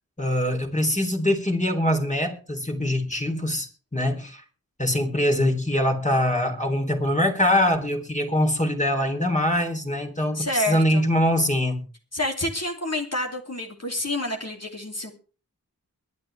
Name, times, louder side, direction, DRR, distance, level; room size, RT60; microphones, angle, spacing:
voice 1, 0.2-4.4 4.8-11.8, left 1 dB, 20° left, 3 dB, 3.3 m, -23 dB
voice 2, 10.3-11.0 12.1-15.1, left 1 dB, 45° left, 2 dB, 2.8 m, -28 dB
22.5 x 9.6 x 3.4 m, 0.37 s
wide cardioid pair, 50°, 36 cm